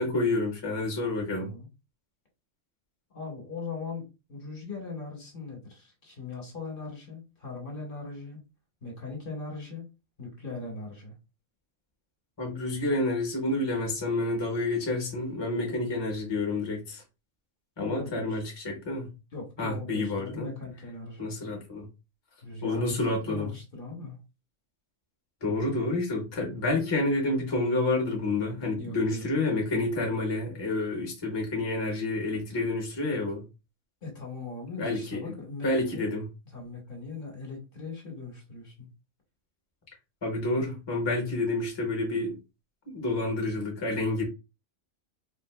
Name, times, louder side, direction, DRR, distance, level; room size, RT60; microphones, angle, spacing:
voice 1, 0.0-1.5 12.4-17.0 17.8-19.1 19.6-20.5 21.2-21.9 22.6-23.5 25.4-33.4 34.8-35.2 35.6-36.2 40.2-42.4 42.9-44.2, left 2 dB, 25° left, 0.8 m, -29 dB
voice 2, 1.3-1.7 3.1-4.0 4.3-8.4 8.8-9.8 10.2-11.1 17.8-18.4 19.3-21.3 22.4-24.2 28.8-29.2 33.3-33.4 34.0-36.1 36.5-38.9, left 3 dB, 50° left, 1.2 m, -39 dB
3.5 x 2.4 x 2.3 m
omnidirectional pair, 1.3 m